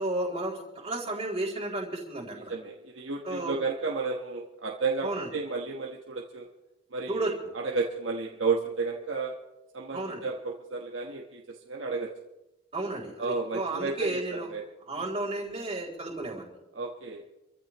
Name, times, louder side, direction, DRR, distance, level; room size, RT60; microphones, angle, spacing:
voice 1, 0.0-2.5 3.2-3.5 5.0-5.3 7.1-7.3 9.9-10.3 12.7-14.5 14.9-16.5, right 2 dB, 30° right, -5 dB, 3.4 m, -33 dB
voice 2, 2.5-6.5 6.9-9.3 9.7-12.1 13.2-14.6 15.0-15.1 16.7-17.2, right 4 dB, 85° right, 0 dB, 1.3 m, -32 dB
26.5 x 15.0 x 3.1 m, 1.0 s
head